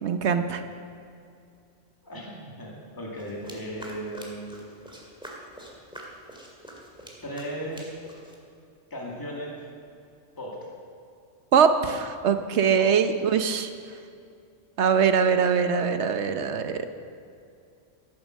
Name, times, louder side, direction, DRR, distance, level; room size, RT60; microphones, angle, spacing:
voice 1, 0.0-0.6 11.5-13.7 14.8-16.9, right 6 dB, 65° right, 9 dB, 1.1 m, -22 dB
voice 2, 2.0-4.5 7.2-8.0 8.9-9.6 10.4-10.7 12.8-12.9, equal, 15° left, -3 dB, 2.2 m, -36 dB
sound 1, 3.2-8.4, equal, 5° right, 2.1 m, -45 dB
13.5 x 10.5 x 6.4 m, 2.5 s
omnidirectional pair, 1.3 m